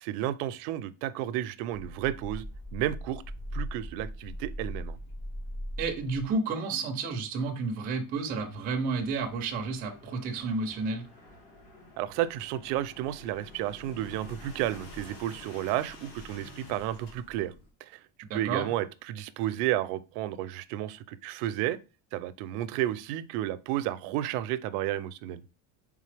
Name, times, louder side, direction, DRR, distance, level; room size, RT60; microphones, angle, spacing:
voice 1, 0.0-2.4 2.7-3.2 3.5-5.0 12.0-17.5 17.8-21.8 22.1-25.4, right 13 dB, 85° right, 0.5 m, -32 dB
sound 1, 1.7-6.3 7.8-17.7, equal, 60° left, 1.9 m, -43 dB
voice 2, 5.8-11.0 18.3-18.7, right 4 dB, 20° right, 0.4 m, -31 dB
3.8 x 3.6 x 3.2 m
cardioid pair, 175°, 46 cm